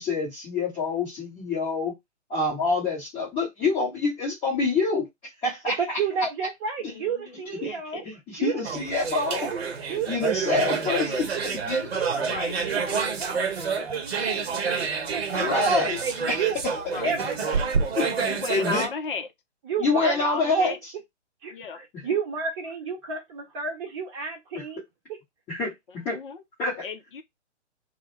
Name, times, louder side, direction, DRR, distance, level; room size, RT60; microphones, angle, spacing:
voice 1, 0.0-1.9 2.3-5.1 5.4-6.0 6.8-6.9 7.6-7.8 8.0-9.5 10.1-11.9 12.9-13.0 15.3-16.0 16.3-16.4 18.0-18.1 18.5-18.9 19.8-20.9 25.5-26.2 26.6-26.8, left 3 dB, 15° left, 0.9 m, -26 dB
voice 2, 5.7-8.0 8.4-8.6 8.9-9.6 9.9-10.8 11.3-17.7 19.6-20.1 20.5-20.8 21.4-24.8, right 6 dB, 25° right, 1.0 m, -32 dB
voice 3, 6.9-8.1 12.3-12.8 16.9-17.1 18.2-19.3 19.8-20.8 21.5-22.2 26.1-26.4 26.8-27.2, left 6 dB, 45° left, 0.6 m, -35 dB
sound 1, 8.6-18.9, right 5 dB, 60° right, 0.8 m, -28 dB
2.1 x 2.1 x 3.1 m
figure-of-eight pair, 125°, 36 cm